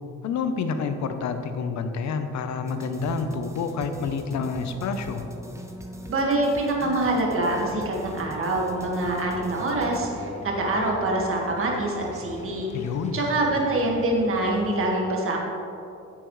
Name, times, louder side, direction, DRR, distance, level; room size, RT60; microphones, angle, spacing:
voice 1, 0.2-5.3 12.7-13.2, left 5 dB, 65° left, 8 dB, 0.8 m, -28 dB
sound 1, 2.6-10.0, right 1 dB, 10° right, 0.9 m, -41 dB
voice 2, 6.1-12.7 13.1-15.4, right 2 dB, 45° right, -1 dB, 1.8 m, -25 dB
sound 2, 7.3-14.8, left 2 dB, 25° left, 1.1 m, -42 dB
10.5 x 7.8 x 3.2 m, 2.7 s
cardioid pair, 90°, 30 cm